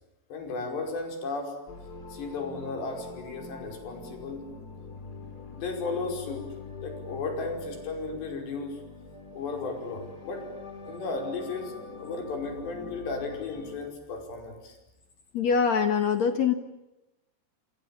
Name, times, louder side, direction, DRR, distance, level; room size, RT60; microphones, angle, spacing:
voice 1, 0.3-1.6 2.1-4.5 5.5-6.5 6.8-8.8 9.3-10.5 10.8-14.8, left 3 dB, 75° left, 4 dB, 7.5 m, -35 dB
sound 1, 1.7-13.8, left 4 dB, 20° left, 4.2 m, -43 dB
voice 2, 15.3-16.5, left 6 dB, 55° left, 9 dB, 2.2 m, -23 dB
29.0 x 27.0 x 7.3 m, 0.96 s
omnidirectional pair, 5.0 m